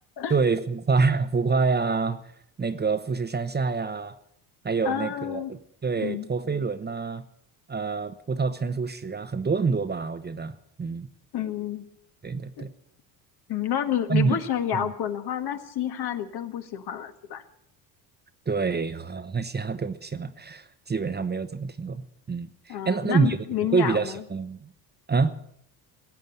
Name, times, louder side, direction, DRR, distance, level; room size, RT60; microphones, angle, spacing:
voice 1, 0.3-2.2 2.6-4.1 4.6-7.2 7.7-10.5 10.8-11.1 12.2-12.7 14.1-14.4 14.7-14.9 18.5-23.4 23.7-24.7 25.1-25.3, right 4 dB, 20° right, 10 dB, 1.0 m, -26 dB
voice 2, 4.8-5.5 6.0-6.3 11.3-11.9 12.6-12.7 13.5-17.4 22.7-24.2, left 10 dB, 60° left, 7 dB, 1.8 m, -29 dB
16.5 x 8.6 x 9.6 m, 0.72 s
supercardioid pair, 90°, 44 cm